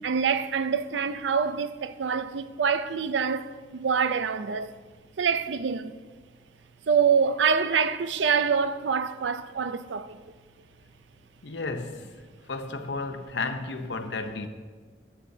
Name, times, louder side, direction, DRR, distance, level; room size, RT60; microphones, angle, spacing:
voice 1, 0.0-4.7 5.2-5.9 6.9-10.2, right 6 dB, 85° right, 0.5 m, -25 dB
voice 2, 11.4-12.1 12.5-14.5, left 3 dB, 75° left, 0.8 m, -33 dB
14.5 x 9.9 x 2.8 m
head